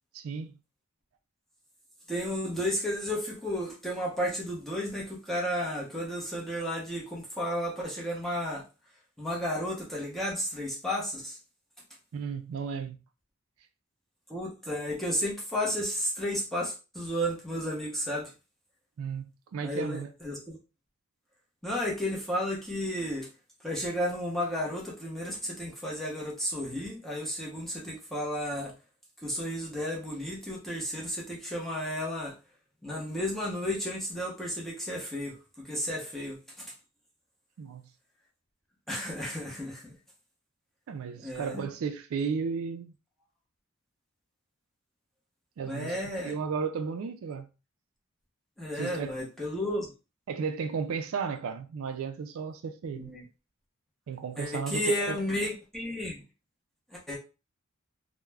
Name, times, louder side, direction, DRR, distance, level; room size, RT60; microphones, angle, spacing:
voice 1, 0.1-0.6 12.1-13.0 19.0-20.1 37.6-37.9 40.9-42.9 45.6-47.5 48.8-49.2 50.3-53.2 54.1-55.2, right 6 dB, 75° right, 0.3 m, -34 dB
voice 2, 2.1-8.6 9.2-11.4 14.3-18.3 19.6-20.6 21.6-23.3 23.6-28.7 29.2-32.3 32.8-36.7 38.9-39.9 41.2-41.7 45.6-46.4 48.6-49.9 52.9-53.2 54.4-56.2 56.9-57.2, equal, ahead, 0.7 m, -33 dB
2.3 x 2.1 x 3.2 m
head